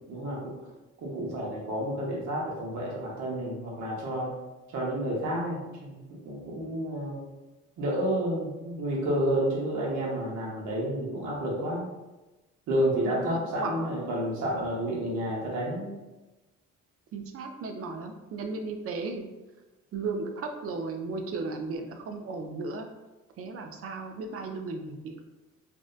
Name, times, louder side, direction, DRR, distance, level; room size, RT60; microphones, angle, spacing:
voice 1, 0.1-0.4 1.0-4.3 4.7-7.2 7.8-11.9 12.7-15.9, right 1 dB, 70° right, -4 dB, 0.8 m, -30 dB
voice 2, 13.1-14.3 17.1-19.3 19.9-22.9 23.4-25.2, right 3 dB, 50° right, 5 dB, 0.4 m, -35 dB
2.6 x 2.1 x 2.3 m, 1.1 s
cardioid pair, 90°, 30 cm